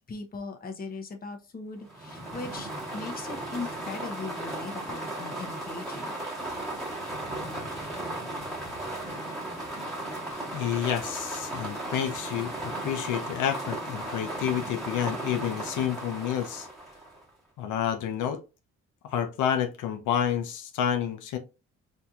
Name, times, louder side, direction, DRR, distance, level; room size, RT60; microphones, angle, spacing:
voice 1, 0.0-6.1, left 3 dB, 30° left, 0.9 m, -39 dB
sound 1, 1.8-17.3, right 1 dB, ahead, 1.4 m, -36 dB
voice 2, 10.5-16.7 17.6-18.4 19.0-21.4, left 9 dB, 85° left, 0.6 m, -29 dB
4.2 x 2.7 x 2.4 m
cardioid pair, 90°, 30 cm